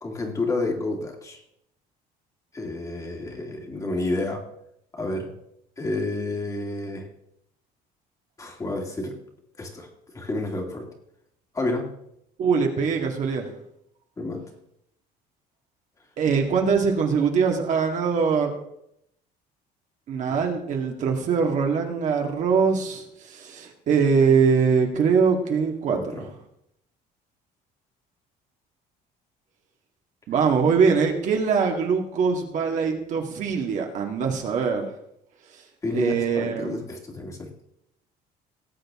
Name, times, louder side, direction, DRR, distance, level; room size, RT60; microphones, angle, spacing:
voice 1, 0.0-1.4 2.5-4.5 4.9-5.3 5.8-7.1 8.4-9.2 9.6-10.9 11.5-11.9 14.2-14.4 25.9-26.3 35.8-37.5, left 2 dB, 20° left, 2 dB, 2.1 m, -30 dB
voice 2, 12.4-13.5 16.2-18.6 20.1-26.2 30.3-34.9 35.9-36.8, right 5 dB, 50° right, 2 dB, 2.0 m, -22 dB
18.0 x 8.0 x 3.7 m, 0.76 s
cardioid pair, 145°, 17 cm